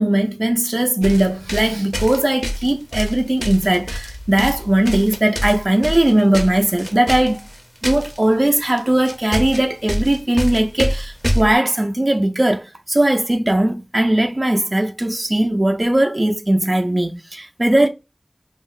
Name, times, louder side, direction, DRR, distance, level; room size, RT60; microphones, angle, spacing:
voice 1, 0.0-7.4 7.8-17.9, right 1 dB, 45° right, 0.4 m, -18 dB
sound 1, 1.0-8.2 8.7-8.8 9.0-11.5, equal, 5° left, 0.6 m, -25 dB
2.4 x 2.0 x 3.6 m
wide cardioid pair, 40°, 0 cm